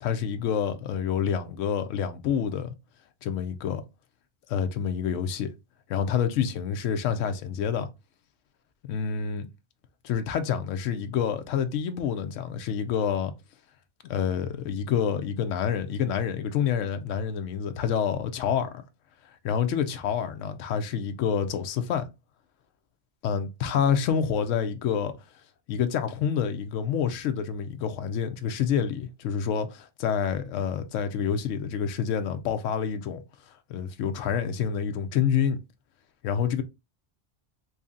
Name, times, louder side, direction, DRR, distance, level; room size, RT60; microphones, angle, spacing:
voice 1, 0.0-2.7 3.2-3.8 4.5-5.5 5.9-7.9 8.8-9.5 10.0-13.3 14.1-18.8 19.4-22.1 23.2-25.1 25.7-33.2 33.7-35.6 36.2-36.6, left 7 dB, 85° left, 0.9 m, -27 dB
3.2 x 2.7 x 3.6 m
omnidirectional pair, 1.3 m